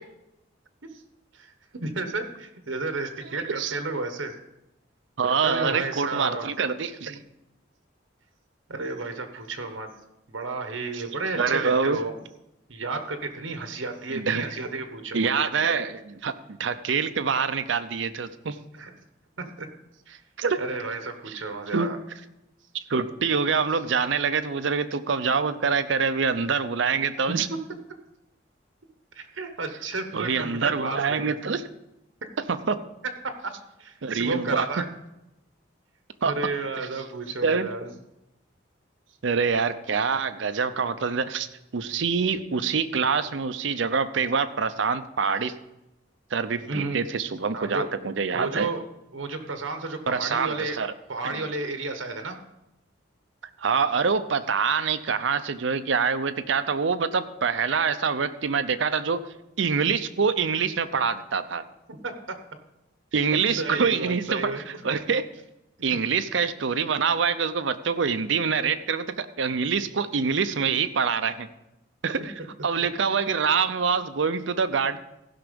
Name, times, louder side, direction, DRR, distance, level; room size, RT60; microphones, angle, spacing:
voice 1, 1.3-4.3 5.4-6.5 7.1-7.2 8.7-9.9 10.3-12.1 12.7-15.3 18.7-18.9 19.4-19.7 20.1-20.2 20.6-22.0 27.3-27.4 29.1-31.4 33.3-33.4 33.8-34.9 36.2-37.9 46.6-47.0 47.5-47.9 48.3-48.8 49.1-50.8 51.1-52.4 61.9-62.4 63.1-64.8 65.9-66.0 72.8-73.0, right 3 dB, 90° right, 7 dB, 1.2 m, -32 dB
voice 2, 5.2-7.2 11.4-12.0 14.1-14.4 15.1-18.6 20.4-20.6 21.3-21.4 21.7-22.0 22.7-27.5 30.1-31.6 32.5-32.8 34.0-34.7 36.2-36.3 37.4-37.7 39.2-41.5 41.7-45.5 46.3-48.7 50.1-50.9 53.6-59.2 59.6-61.6 63.1-64.5 64.8-65.2 65.8-71.5 72.0-72.3 72.6-75.0, right 5 dB, 70° right, 11 dB, 0.6 m, -25 dB
15.5 x 5.9 x 5.2 m, 0.89 s
head